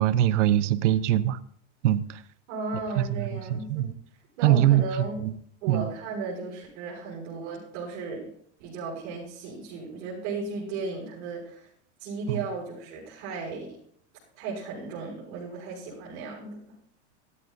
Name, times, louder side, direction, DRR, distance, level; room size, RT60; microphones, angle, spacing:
voice 1, 0.0-1.4 1.8-2.0 3.0-3.9 4.4-4.8 5.2-5.3 5.7-5.9 12.3-12.4, right 12 dB, 85° right, 14 dB, 0.9 m, -22 dB
voice 2, 2.5-3.9 4.4-5.2 5.6-8.3 8.6-11.7 12.0-13.8 14.4-16.7, right 4 dB, 65° right, -5 dB, 7.2 m, -35 dB
17.5 x 13.5 x 2.7 m, 0.63 s
supercardioid pair, 130°, 35 cm